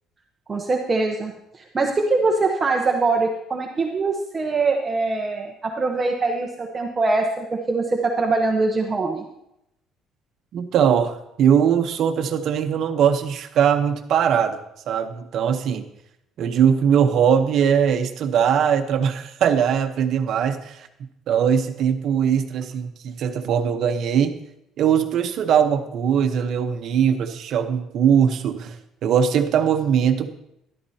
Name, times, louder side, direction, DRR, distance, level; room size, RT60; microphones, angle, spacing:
voice 1, 0.5-9.2, right 3 dB, 20° right, 2 dB, 0.9 m, -23 dB
voice 2, 10.5-14.6 14.9-15.9 16.4-20.9 21.3-24.3 24.8-30.3, right 8 dB, 55° right, 8 dB, 1.0 m, -20 dB
13.0 x 12.0 x 2.8 m, 0.82 s
cardioid pair, 140°, 0 cm